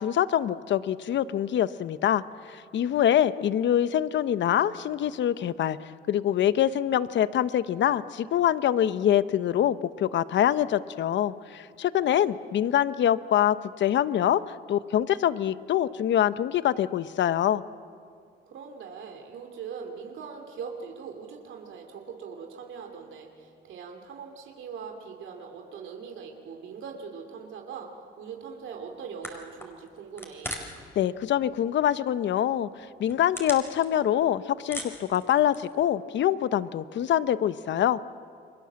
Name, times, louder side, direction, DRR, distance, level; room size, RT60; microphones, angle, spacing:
voice 1, 0.0-5.8 6.1-14.4 14.7-17.6 31.0-32.7 33.0-38.0, left 10 dB, 65° left, 14 dB, 0.9 m, -25 dB
voice 2, 18.4-30.6, right 6 dB, 75° right, 3 dB, 2.9 m, -41 dB
sound 1, 28.9-29.0 29.2-30.9 31.2-31.8 32.2-32.3 32.8-34.3 34.5-35.8, left 1 dB, 10° left, 4.9 m, -39 dB
30.0 x 23.0 x 7.6 m, 2.3 s
cardioid pair, 90°, 20 cm